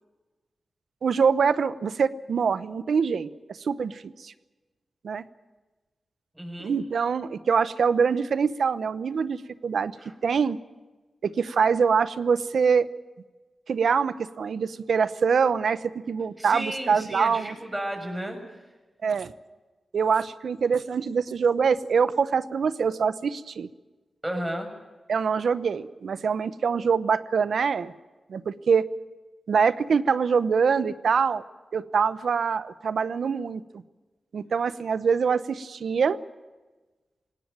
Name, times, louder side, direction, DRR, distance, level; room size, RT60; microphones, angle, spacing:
voice 1, 1.0-4.3 5.0-5.2 6.6-9.9 10.2-10.6 11.2-12.9 13.7-17.5 19.0-19.3 19.9-23.7 25.1-27.9 28.3-28.9 29.5-31.4 31.7-33.8 34.3-36.2, right 6 dB, 80° right, 15 dB, 0.8 m, -24 dB
voice 2, 6.3-6.7 10.0-10.1 16.4-18.4 24.2-24.7, right 1 dB, 15° right, 5 dB, 6.6 m, -33 dB
20.5 x 18.0 x 9.0 m, 1.2 s
cardioid pair, 55°, 0 cm